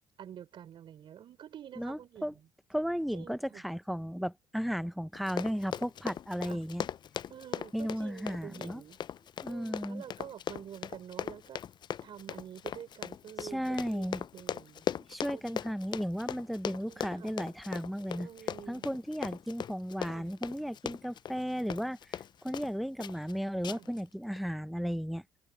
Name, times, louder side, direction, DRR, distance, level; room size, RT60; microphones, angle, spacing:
voice 1, 0.2-2.5 3.1-3.6 6.4-6.6 7.3-9.0 9.5-11.6 12.0-14.8 15.3-15.8 16.8-17.4 18.2-18.9 20.0-20.3 23.7-23.9, right 9 dB, 55° right, 4.3 m, -48 dB
voice 2, 1.8-2.3 2.7-6.9 7.7-8.8 9.4-10.0 13.4-14.2 14.9-18.3 18.7-25.2, equal, ahead, 1.2 m, -35 dB
Run, 5.1-22.7 23.0-23.3 23.6-24.0 24.4-24.5, left 9 dB, 50° left, 0.6 m, -39 dB
hypercardioid pair, 60°, 10 cm